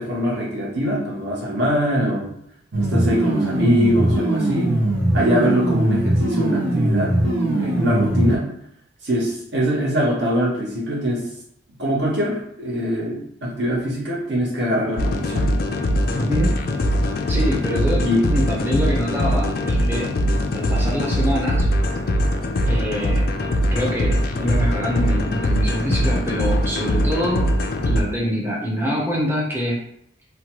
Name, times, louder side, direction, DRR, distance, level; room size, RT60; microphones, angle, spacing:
voice 1, 0.0-2.3 2.8-4.7 5.1-7.1 7.4-8.5 9.0-11.3 11.8-15.5 18.0-18.2, equal, 65° right, -4 dB, 0.9 m, -23 dB
sound 1, 2.7-8.4, right 1 dB, 90° right, 0.6 m, -20 dB
sound 2, 15.0-28.0, equal, 55° left, 0.3 m, -21 dB
voice 2, 16.1-16.5 17.3-20.1 20.5-21.7 22.7-23.3 23.7-27.5 27.9-29.8, equal, 10° right, -4 dB, 0.6 m, -25 dB
2.9 x 2.2 x 2.9 m, 0.72 s
head